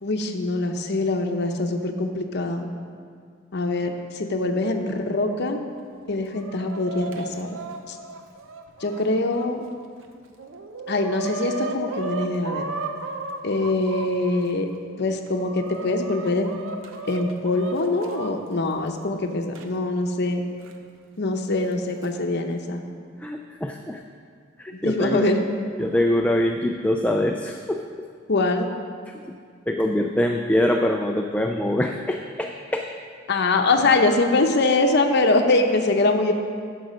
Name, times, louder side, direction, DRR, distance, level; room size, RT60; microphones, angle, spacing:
voice 1, 0.0-2.7 3.5-5.6 6.1-7.5 8.8-9.6 10.9-12.6 13.4-14.7 15.0-16.5 17.1-20.4 21.2-22.8 24.8-25.4 28.3-28.7 33.3-36.3, left 2 dB, 60° left, 4 dB, 0.8 m, -23 dB
Chicken rooster, 6.0-9.5 10.0-10.1 10.4-14.4 15.0-18.3 19.5-19.6 20.6-20.7 21.7-22.1, right 3 dB, 85° right, 0.7 m, -35 dB
voice 2, 23.2-24.0 24.6-25.3 25.8-27.9 29.1-29.2 29.7-32.9, left 1 dB, 5° left, 2 dB, 0.4 m, -24 dB
10.5 x 6.4 x 5.1 m, 2.2 s
head